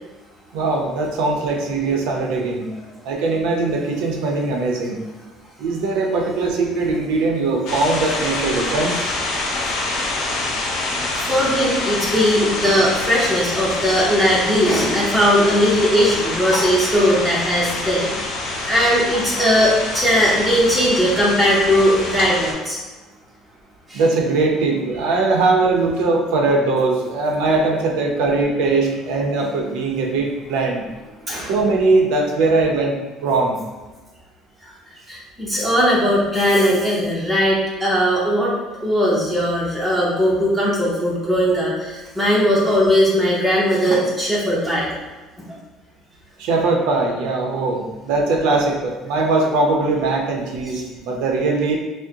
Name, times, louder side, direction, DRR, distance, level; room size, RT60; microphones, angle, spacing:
voice 1, 0.5-2.7 3.0-5.0 5.6-9.1 23.9-30.8 31.5-33.6 46.4-51.8, right 3 dB, 85° right, 1 dB, 0.8 m, -20 dB
sound 1, 7.7-22.5, left 2 dB, 70° left, 1.0 m, -26 dB
voice 2, 11.2-18.1 18.7-22.8 23.9-24.0 31.2-31.5 35.1-38.5 38.8-44.9, equal, 5° right, -7 dB, 0.8 m, -18 dB
6.1 x 2.1 x 2.8 m, 1.2 s
cardioid pair, 160°, 0 cm